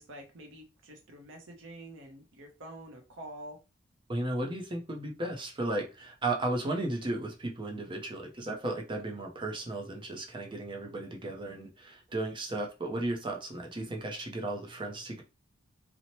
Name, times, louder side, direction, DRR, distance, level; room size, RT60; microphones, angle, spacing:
voice 1, 0.0-3.6, right 1 dB, 70° right, 3 dB, 0.6 m, -47 dB
voice 2, 4.1-15.2, right 2 dB, 25° right, 1 dB, 0.5 m, -35 dB
2.8 x 2.0 x 2.9 m, 0.28 s
head